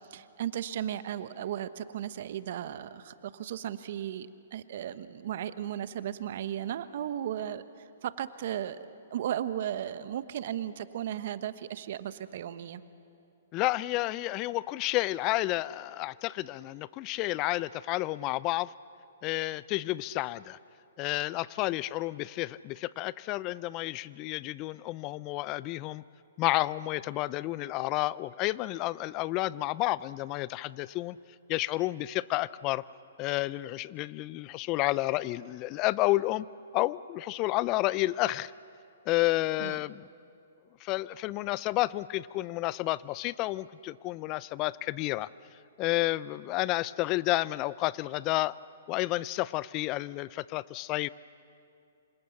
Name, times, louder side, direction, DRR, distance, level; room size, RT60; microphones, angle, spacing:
voice 1, 0.1-7.6 8.0-8.8 9.1-12.8 39.6-39.8, right 10 dB, 55° right, 12 dB, 1.2 m, -35 dB
voice 2, 13.5-18.7 19.2-20.6 21.0-26.0 26.4-31.2 31.5-32.8 33.2-36.5 36.7-38.5 39.1-40.1 40.8-45.3 45.8-48.5 48.9-51.1, left 18 dB, 35° left, 19 dB, 0.5 m, -30 dB
27.0 x 26.5 x 7.2 m, 2.5 s
hypercardioid pair, 125°, 0 cm